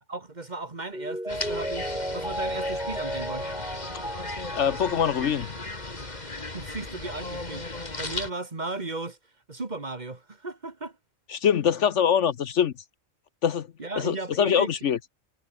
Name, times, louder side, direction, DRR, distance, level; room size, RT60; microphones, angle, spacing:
voice 1, 0.1-3.5 6.5-9.2 9.5-11.0 13.8-14.7, right 3 dB, 35° right, 1.8 m, -36 dB
Mallet percussion, 0.9-6.4 6.8-6.9, equal, 5° right, 1.5 m, -34 dB
sound 1, 1.3-8.3, left 2 dB, 30° left, 2.7 m, -36 dB
voice 2, 4.5-5.5 11.3-12.7 13.4-13.7 14.0-15.0, left 8 dB, 65° left, 1.1 m, -23 dB
omnidirectional pair, 1.4 m